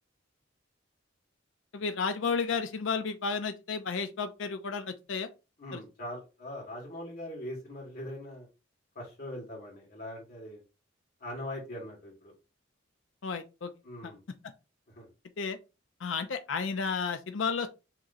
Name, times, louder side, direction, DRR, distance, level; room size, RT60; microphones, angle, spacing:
voice 1, 1.7-5.3 5.7-5.8 13.2-13.7 14.0-14.1 15.4-15.6 16.0-17.7, left 5 dB, 75° left, 0.5 m, -32 dB
voice 2, 5.6-8.5 9.0-10.6 11.2-12.3 13.8-14.2 14.9-15.1, left 1 dB, 50° left, 1.8 m, -41 dB
6.0 x 3.1 x 2.6 m
head